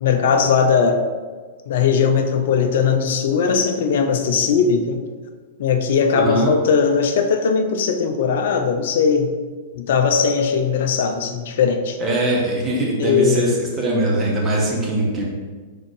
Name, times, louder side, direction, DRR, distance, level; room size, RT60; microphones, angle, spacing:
voice 1, 0.0-1.0 1.7-5.0 5.6-9.3 9.7-12.0 13.0-13.6, left 6 dB, 60° left, 6 dB, 0.5 m, -19 dB
voice 2, 6.1-6.5 12.0-15.2, right 1 dB, 20° right, -3 dB, 1.1 m, -21 dB
4.0 x 3.7 x 3.2 m, 1.5 s
figure-of-eight pair, 100°, 0 cm